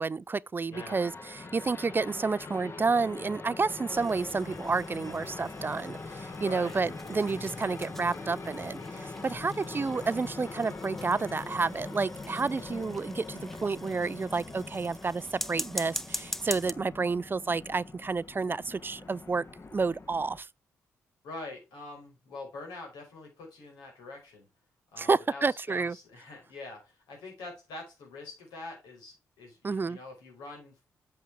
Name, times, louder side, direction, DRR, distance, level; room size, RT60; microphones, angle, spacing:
voice 1, 0.0-19.5 19.7-20.5 25.0-26.0 29.6-30.0, right 4 dB, 30° right, 0.4 m, -30 dB
voice 2, 0.7-1.1 6.4-6.8 9.3-9.7 21.2-24.5 24.9-30.8, left 2 dB, 80° left, 5.3 m, -45 dB
sound 1, 0.7-20.4, left 3 dB, 40° left, 1.8 m, -43 dB
sound 2, 3.9-16.7, equal, 5° left, 0.8 m, -43 dB
8.2 x 7.3 x 3.6 m
hypercardioid pair, 45°, 7 cm